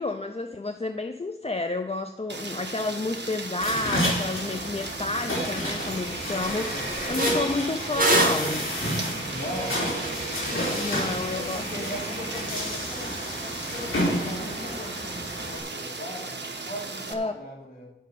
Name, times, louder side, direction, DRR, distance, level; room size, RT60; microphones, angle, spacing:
voice 1, 0.0-8.7 10.7-11.7 17.1-17.3, left 2 dB, 30° left, 8 dB, 0.5 m, -30 dB
Rain, 2.3-17.1, right 3 dB, 65° right, 1.1 m, -37 dB
sound 1, 3.6-15.6, equal, 90° left, 3.3 m, -31 dB
sound 2, 5.4-5.5 5.8-6.0 6.4-11.1, right 2 dB, 45° right, 2.2 m, -29 dB
voice 2, 6.4-6.9 9.3-9.8 10.9-17.9, left 1 dB, 50° left, -4 dB, 3.7 m, -39 dB
11.0 x 5.7 x 6.9 m, 0.90 s
wide cardioid pair, 70°, 20 cm